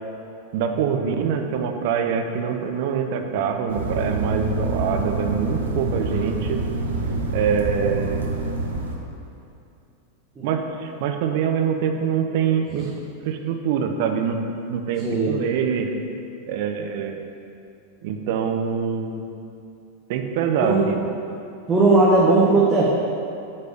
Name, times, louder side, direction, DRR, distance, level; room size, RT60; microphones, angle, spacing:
voice 1, 0.5-6.6 7.3-8.2 10.4-12.9 13.2-16.1 16.5-17.2 18.0-19.2 20.1-21.1, right 7 dB, 50° right, 5 dB, 0.7 m, -24 dB
sound 1, 3.7-9.0, right 2 dB, 70° right, 1.1 m, -26 dB
voice 2, 15.0-15.4 20.6-20.9 21.7-22.8, right 3 dB, 20° right, -6 dB, 1.3 m, -17 dB
9.5 x 4.3 x 6.6 m, 2.6 s
figure-of-eight pair, 90°, 0 cm